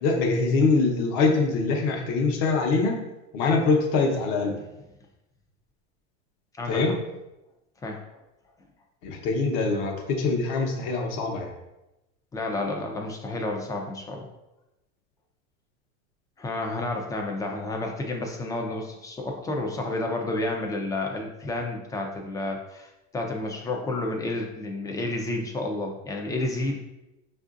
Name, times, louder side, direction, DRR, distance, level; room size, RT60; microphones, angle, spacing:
voice 1, 0.0-3.0 3.3-4.5 6.7-6.9 9.0-11.5, left 3 dB, 55° left, 2 dB, 0.9 m, -23 dB
voice 2, 6.6-6.9 7.8-8.0 12.3-14.3 16.4-26.8, left 2 dB, 10° left, 1 dB, 0.4 m, -30 dB
5.2 x 2.5 x 2.4 m, 0.95 s
supercardioid pair, 130°, 34 cm